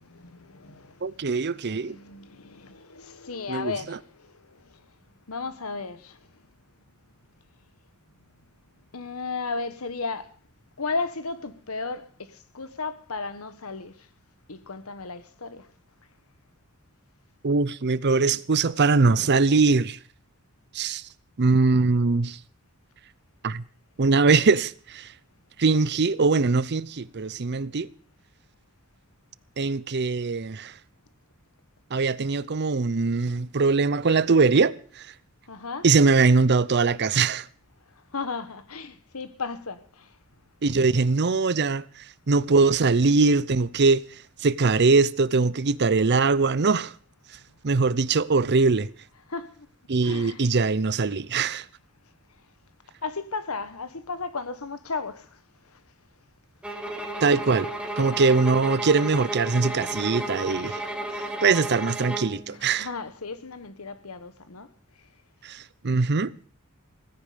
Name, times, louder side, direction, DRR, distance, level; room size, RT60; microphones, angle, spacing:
voice 1, 0.0-1.0 1.7-4.8 5.3-6.2 8.9-10.3 10.8-13.9 14.5-15.7 35.5-35.8 38.1-40.1 49.3-49.7 50.0-50.4 53.0-55.4 62.5-64.7, left 4 dB, 80° left, 1.4 m, -35 dB
voice 2, 1.0-2.0 3.5-4.0 17.4-20.0 20.7-21.0 21.4-22.4 23.4-23.6 24.0-25.1 25.6-27.9 29.6-30.7 31.9-34.8 35.8-37.5 40.6-41.8 42.3-44.0 44.4-46.9 47.6-48.9 49.9-51.6 57.2-57.7 58.0-60.8 61.4-62.9 65.4-66.3, right 4 dB, 50° right, 0.7 m, -22 dB
sound 1, 56.6-62.4, right 2 dB, 5° right, 1.8 m, -33 dB
17.0 x 15.0 x 5.1 m
head